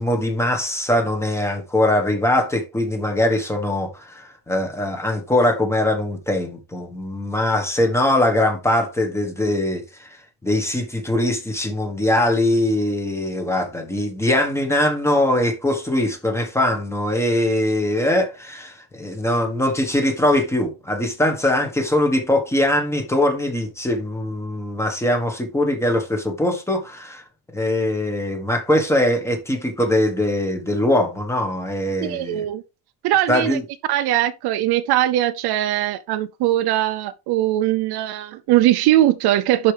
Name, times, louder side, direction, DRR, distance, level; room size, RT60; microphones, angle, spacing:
voice 1, 0.0-10.2 10.4-27.2 27.5-32.4 33.3-33.6, left 1 dB, 5° left, 1.3 m, -21 dB
voice 2, 32.0-32.6 33.0-33.6 33.9-39.7, right 14 dB, 60° right, 0.6 m, -20 dB
11.5 x 4.7 x 3.4 m
cardioid pair, 175°, 45 cm